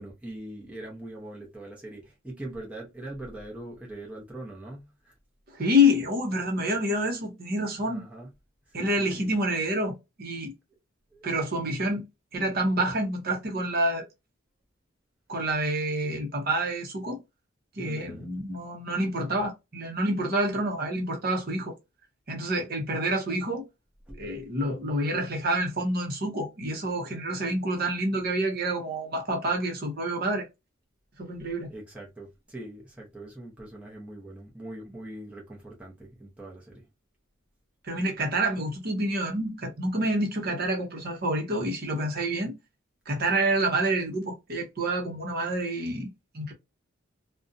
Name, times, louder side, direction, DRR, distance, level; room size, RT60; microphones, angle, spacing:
voice 1, 0.0-5.1 7.6-8.3 8.8-9.3 11.1-11.2 17.8-18.3 24.1-24.3 31.7-36.8, right 1 dB, 5° right, 0.7 m, -42 dB
voice 2, 5.5-8.0 8.7-10.5 11.2-12.0 12.3-14.1 15.3-17.2 17.8-21.7 22.3-23.7 24.2-30.5 31.2-31.7 37.8-42.6 43.1-46.5, equal, 45° right, 0.7 m, -28 dB
2.5 x 2.1 x 2.5 m
head